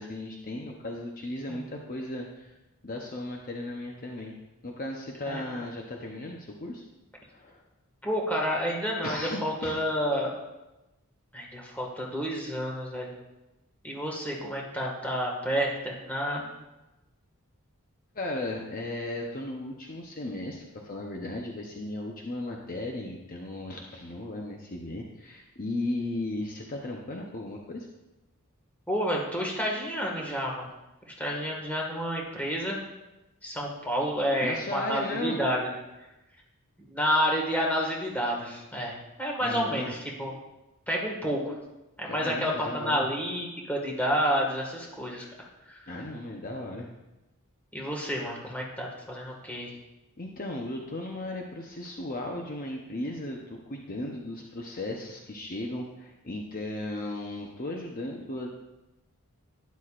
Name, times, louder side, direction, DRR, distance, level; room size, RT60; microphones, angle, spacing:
voice 1, 0.0-2.5 2.8-4.3 4.6-6.8 7.2-7.6 9.0-9.8 18.1-27.9 34.4-35.4 39.4-39.9 42.1-43.1 45.9-46.9 50.2-58.5, left 2 dB, 40° left, 0 dB, 0.9 m, -36 dB
voice 2, 8.0-10.3 11.3-13.1 13.8-16.5 28.9-30.7 31.0-32.8 33.4-35.7 36.9-40.3 40.9-41.6 42.0-45.3 45.7-45.9 47.7-49.7, equal, 5° left, -2 dB, 1.8 m, -30 dB
12.0 x 10.5 x 2.5 m, 1.0 s
head